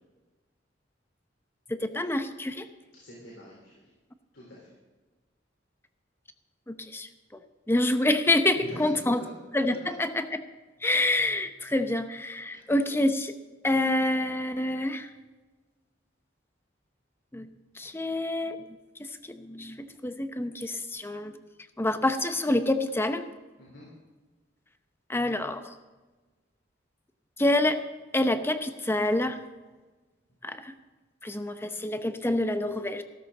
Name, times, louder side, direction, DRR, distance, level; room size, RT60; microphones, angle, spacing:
voice 1, 1.7-2.7 6.7-7.1 7.7-9.2 9.5-10.4 10.8-13.3 13.6-15.1 17.3-17.5 17.8-18.6 19.0-21.3 21.8-23.3 25.1-25.7 27.4-27.8 28.1-29.4 30.4-30.7 31.2-33.0, left 1 dB, 15° left, 9 dB, 0.8 m, -27 dB
voice 2, 2.9-3.7 4.3-4.7 8.5-9.1 23.6-23.9, equal, 80° left, -5 dB, 3.9 m, -43 dB
15.5 x 13.0 x 3.9 m, 1.3 s
head